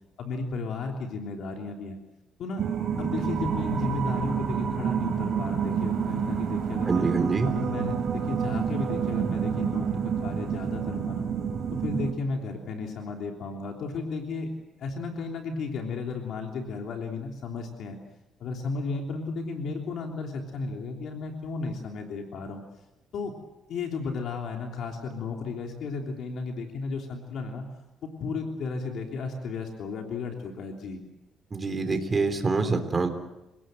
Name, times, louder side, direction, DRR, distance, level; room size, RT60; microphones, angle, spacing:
voice 1, 0.2-2.0 2.4-2.6 3.0-7.0 7.4-11.3 11.7-14.5 14.8-18.0 18.4-22.6 23.1-23.3 23.7-27.6 28.0-31.0, left 4 dB, 65° left, 2 dB, 3.2 m, -34 dB
sound 1, 2.6-12.1, right 7 dB, 55° right, 4.3 m, -28 dB
voice 2, 6.9-7.5 31.5-33.1, right 4 dB, 25° right, 7 dB, 3.5 m, -25 dB
29.0 x 17.5 x 7.7 m, 0.96 s
cardioid pair, 110°, 0 cm